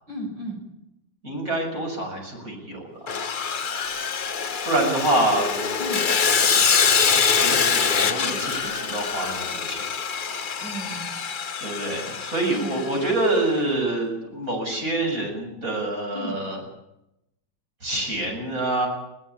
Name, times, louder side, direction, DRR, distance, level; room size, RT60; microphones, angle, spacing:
voice 1, 0.1-0.6 5.8-6.1 10.6-11.1 12.5-12.8 16.1-16.4, right 1 dB, 65° right, 3 dB, 6.7 m, -34 dB
voice 2, 1.2-2.8 4.7-5.8 7.1-9.8 11.6-16.6 17.8-18.9, right 2 dB, 45° right, 2 dB, 7.9 m, -26 dB
Sawing, 3.1-13.3, left 6 dB, 40° left, 0.7 m, -24 dB
22.0 x 18.5 x 8.7 m, 0.86 s
omnidirectional pair, 2.0 m